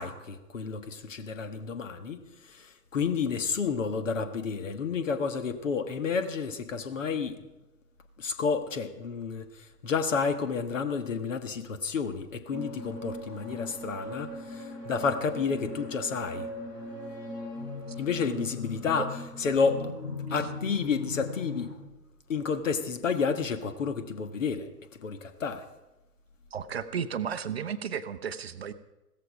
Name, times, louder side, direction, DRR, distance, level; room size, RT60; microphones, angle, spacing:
voice 1, 0.0-2.2 2.5-7.4 8.2-9.5 9.8-16.5 18.0-19.1 19.4-19.9 20.3-21.7 22.3-24.7 25.0-25.7, left 5 dB, 55° left, 10 dB, 1.5 m, -30 dB
sound 1, 12.5-21.8, left 2 dB, 85° left, 2.9 m, -38 dB
voice 2, 26.5-28.7, right 7 dB, 40° right, 11 dB, 0.7 m, -33 dB
16.0 x 14.0 x 5.1 m, 1.0 s
figure-of-eight pair, 120°, 47 cm